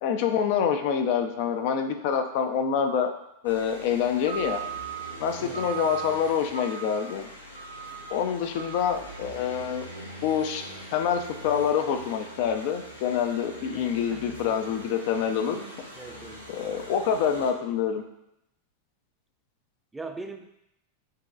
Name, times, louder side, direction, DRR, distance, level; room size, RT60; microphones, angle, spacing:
voice 1, 0.0-3.1 3.4-4.6 5.2-7.3 8.1-9.9 10.2-10.6 10.9-15.6 16.5-18.0, left 7 dB, 50° left, 6 dB, 0.5 m, -26 dB
sound 1, 3.4-17.5, right 4 dB, 90° left, 0.8 m, -40 dB
voice 2, 5.4-5.7 13.7-14.2 16.0-16.5 19.9-20.5, right 3 dB, 10° right, 6 dB, 0.4 m, -41 dB
7.4 x 3.0 x 2.4 m, 0.81 s
figure-of-eight pair, 90°, 0 cm